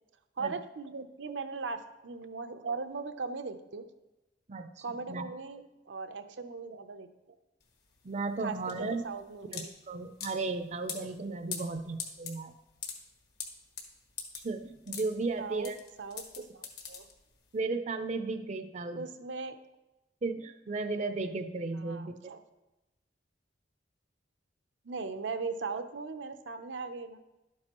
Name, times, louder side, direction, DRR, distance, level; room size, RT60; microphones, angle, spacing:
voice 1, 0.4-3.9 4.8-7.1 8.4-9.6 15.4-15.7 16.0-17.1 18.9-19.6 21.7-22.4 24.8-27.2, right 4 dB, 85° right, 9 dB, 0.7 m, -39 dB
voice 2, 4.5-5.2 8.0-9.0 9.5-12.5 14.4-15.8 16.4-16.5 17.5-19.1 20.2-22.3, right 3 dB, 40° right, 9 dB, 0.5 m, -35 dB
sound 1, 7.6-17.5, left 6 dB, 60° left, 1.5 m, -43 dB
11.5 x 8.7 x 3.0 m, 1.0 s
head